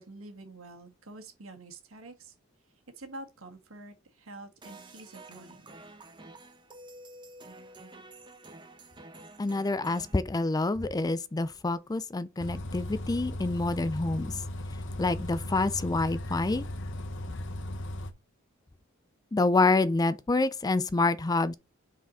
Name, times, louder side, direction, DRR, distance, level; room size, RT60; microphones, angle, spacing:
voice 1, 0.0-2.3 3.0-5.7, right 2 dB, 80° right, 1.8 m, -47 dB
sound 1, 4.6-10.2, right 2 dB, 25° right, 1.1 m, -49 dB
voice 2, 9.4-14.3 15.0-16.6 19.3-21.5, left 3 dB, 20° left, 0.4 m, -27 dB
Bus, 12.4-18.1, left 1 dB, 65° left, 0.8 m, -37 dB
5.8 x 4.8 x 4.1 m
head